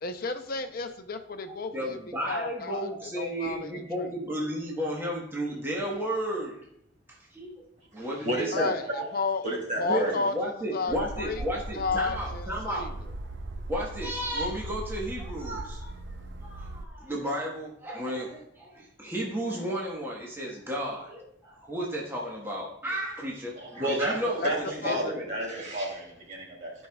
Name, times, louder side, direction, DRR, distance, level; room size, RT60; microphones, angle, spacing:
voice 1, 0.0-2.0 2.3-3.7 4.0-4.1 8.5-9.4 9.8-11.4 11.7-12.9 24.4-24.5 24.8-25.1, left 4 dB, 55° left, 7 dB, 0.6 m, -32 dB
voice 2, 1.4-6.6 7.1-7.7 7.9-9.1 9.8-12.9 13.7-15.9 16.4-25.3, right 1 dB, 15° right, -3 dB, 1.2 m, -33 dB
voice 3, 8.0-8.7 9.4-10.1 23.6-24.6 24.8-26.7, right 1 dB, 45° right, -3 dB, 2.8 m, -31 dB
sound 1, 10.9-16.8, right 1 dB, 75° right, 0.6 m, -38 dB
14.5 x 5.3 x 2.3 m, 0.73 s
head